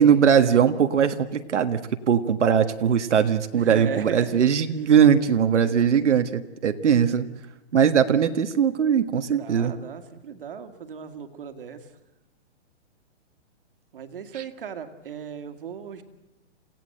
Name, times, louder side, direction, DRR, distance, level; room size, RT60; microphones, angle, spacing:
voice 1, 0.0-7.3 7.7-9.7, right 8 dB, 80° right, 8 dB, 1.6 m, -20 dB
voice 2, 3.5-4.4 5.6-6.2 9.3-12.0 13.9-16.0, right 7 dB, 50° right, 8 dB, 2.1 m, -37 dB
28.0 x 17.0 x 7.9 m, 0.99 s
hypercardioid pair, 180°, 35 cm